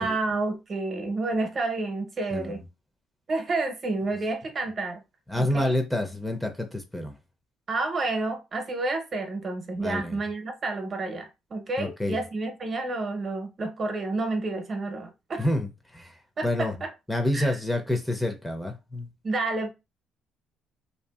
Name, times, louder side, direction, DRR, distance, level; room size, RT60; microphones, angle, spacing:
voice 1, 0.0-2.6 3.3-5.0 5.4-5.8 7.7-15.5 16.4-16.9 17.3-17.5 19.2-19.7, right 3 dB, 45° right, 0.9 m, -30 dB
voice 2, 2.3-2.6 5.3-7.2 9.8-10.2 11.8-12.2 15.4-16.1 16.4-16.8 17.1-19.1, left 1 dB, 5° left, 0.6 m, -28 dB
2.6 x 2.5 x 2.4 m
supercardioid pair, 80°, 0 cm